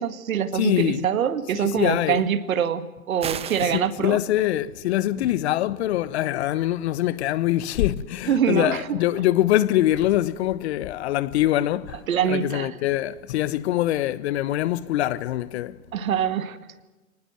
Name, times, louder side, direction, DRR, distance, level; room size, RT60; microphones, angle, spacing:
voice 1, 0.0-4.2 8.3-8.9 12.1-12.8 15.9-16.6, right 8 dB, 65° right, 2.0 m, -24 dB
voice 2, 0.5-1.1 1.5-2.2 3.6-12.0 12.3-15.8, left 14 dB, 45° left, 1.1 m, -24 dB
sound 1, 3.2-3.8, right 8 dB, 15° right, 0.9 m, -32 dB
24.5 x 19.0 x 7.8 m
hypercardioid pair, 115°, 45 cm